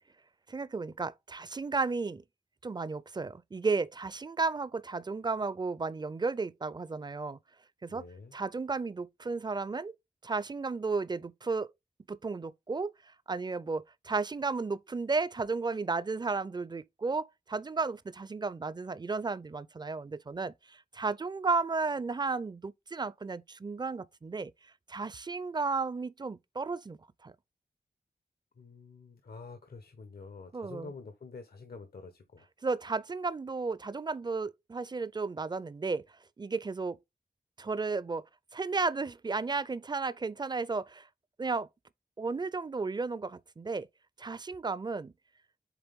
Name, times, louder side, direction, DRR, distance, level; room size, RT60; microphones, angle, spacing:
voice 1, 0.5-2.2 2.6-7.4 7.8-8.0 8.3-9.9 10.2-11.7 12.1-12.9 13.3-24.5 24.9-27.3 30.5-30.9 32.6-36.0 36.4-37.0 37.6-38.2 38.5-41.1 41.4-41.7 42.2-43.9 44.2-45.1, right 4 dB, 25° right, 0.4 m, -33 dB
voice 2, 7.9-8.3 28.6-32.5, left 4 dB, 80° left, 1.0 m, -47 dB
8.1 x 3.3 x 3.6 m
wide cardioid pair, 105°, 16 cm